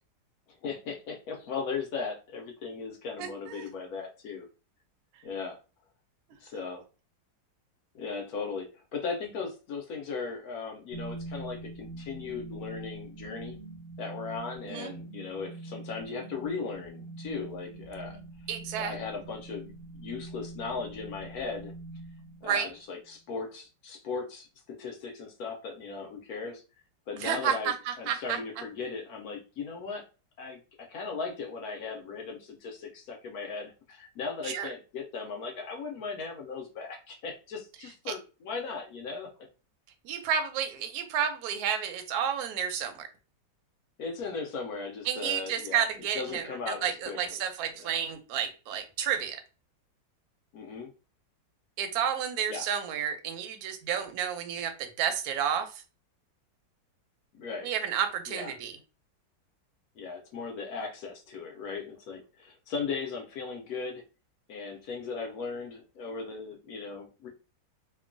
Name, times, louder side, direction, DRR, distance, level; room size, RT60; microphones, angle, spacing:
voice 1, 0.6-4.5 5.2-5.6 6.4-6.8 7.9-13.6 14.0-18.2 18.7-21.7 22.4-26.6 27.1-27.7 28.0-30.0 30.4-39.3 44.0-45.8 46.1-47.2 47.8-48.0 50.5-50.9 52.5-52.7 57.3-57.7 58.3-58.5 60.0-64.0 64.5-67.3, left 5 dB, 70° left, 2 dB, 0.9 m, -37 dB
voice 2, 3.2-3.7 14.6-14.9 18.5-18.9 22.4-22.7 27.2-28.4 34.4-34.7 38.1-38.2 40.0-43.1 45.1-49.4 51.8-55.8 57.6-58.8, right 8 dB, 70° right, 6 dB, 0.9 m, -31 dB
sound 1, 10.9-22.9, right 2 dB, 85° right, 1.3 m, -44 dB
2.9 x 2.2 x 2.4 m, 0.33 s
omnidirectional pair, 2.0 m